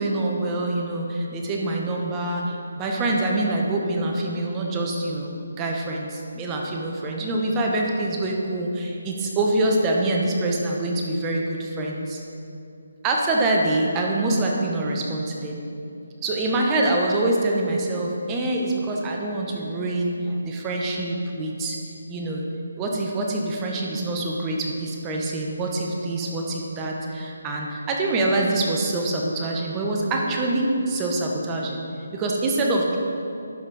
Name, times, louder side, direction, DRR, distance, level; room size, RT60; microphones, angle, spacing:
voice 1, 0.0-12.2 13.0-15.6 16.2-21.8 22.1-22.5 22.8-31.8 32.1-33.0, right 2 dB, 15° right, -1 dB, 0.9 m, -25 dB
11.5 x 4.3 x 4.8 m, 2.6 s
hypercardioid pair, 165°, 0 cm